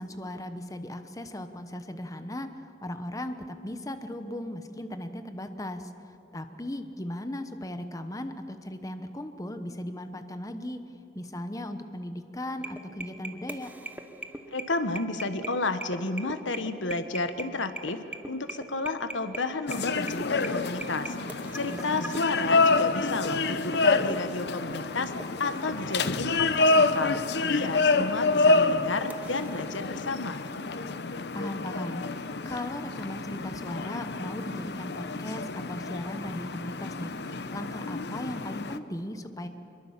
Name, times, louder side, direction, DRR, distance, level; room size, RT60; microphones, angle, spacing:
voice 1, 0.0-10.8 11.1-13.7 21.7-22.1 31.3-39.5, left 1 dB, 20° left, 8 dB, 1.0 m, -37 dB
sound 1, 12.6-30.0, right 2 dB, 10° right, 1.0 m, -43 dB
voice 2, 14.5-27.2 27.5-30.4, left 3 dB, 90° left, 10 dB, 1.3 m, -32 dB
sound 2, 19.7-38.8, left 3 dB, 60° left, 0.8 m, -28 dB
24.5 x 22.5 x 7.4 m, 2.9 s
head